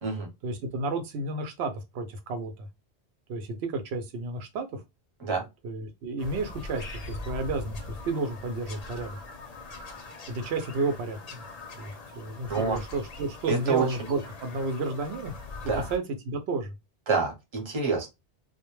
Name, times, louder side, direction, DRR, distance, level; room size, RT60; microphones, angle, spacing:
voice 1, 0.4-2.7 3.3-4.8 5.6-9.2 10.3-11.4 11.8-15.3 15.7-16.7, right 3 dB, 85° right, 0.8 m, -32 dB
Bird vocalization bird call bird song, 6.2-16.0, left 3 dB, 50° left, 0.5 m, -42 dB
voice 2, 13.5-13.9 15.7-15.8 17.1-18.1, right 4 dB, 30° right, 0.7 m, -27 dB
2.2 x 2.1 x 2.9 m
omnidirectional pair, 1.1 m